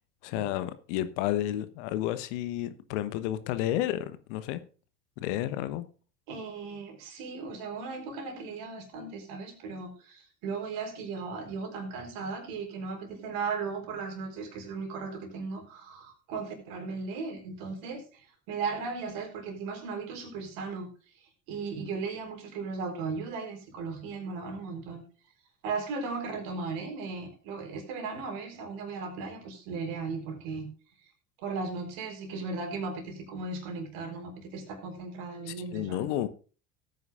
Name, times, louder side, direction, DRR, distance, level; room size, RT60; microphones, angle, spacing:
voice 1, 0.2-4.6 5.2-5.9 35.5-36.3, left 13 dB, 60° left, 1.2 m, -31 dB
voice 2, 6.3-20.9 21.5-25.0 25.6-30.7 31.4-36.1, right 4 dB, 55° right, 4.1 m, -36 dB
17.5 x 9.4 x 2.6 m
figure-of-eight pair, 70°, 41 cm